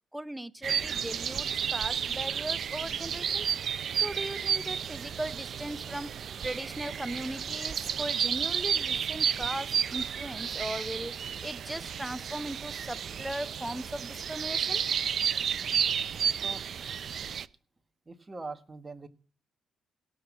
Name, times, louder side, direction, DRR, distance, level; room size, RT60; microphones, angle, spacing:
voice 1, 0.1-3.5 3.9-14.8, right 1 dB, 5° right, 0.6 m, -38 dB
sound 1, 0.6-17.5, right 8 dB, 55° right, 0.5 m, -32 dB
voice 2, 18.1-19.1, right 3 dB, 25° right, 1.3 m, -42 dB
17.5 x 5.9 x 6.0 m
cardioid pair, 90°, 0 cm